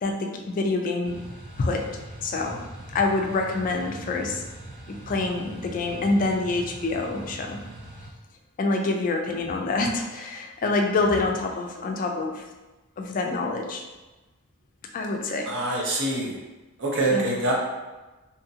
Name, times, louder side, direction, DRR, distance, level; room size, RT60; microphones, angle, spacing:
voice 1, 0.0-1.2 1.6-1.9 2.2-2.6 2.9-4.4 4.9-7.6 8.6-12.4 13.0-13.8 14.9-15.6 17.1-17.4, left 3 dB, 40° left, 3 dB, 0.3 m, -26 dB
sound 1, 1.0-8.1, right 1 dB, 20° right, 0.8 m, -41 dB
voice 2, 15.5-16.3 16.8-17.5, right 2 dB, 55° right, -2 dB, 0.7 m, -25 dB
2.8 x 2.5 x 2.7 m, 1.1 s
head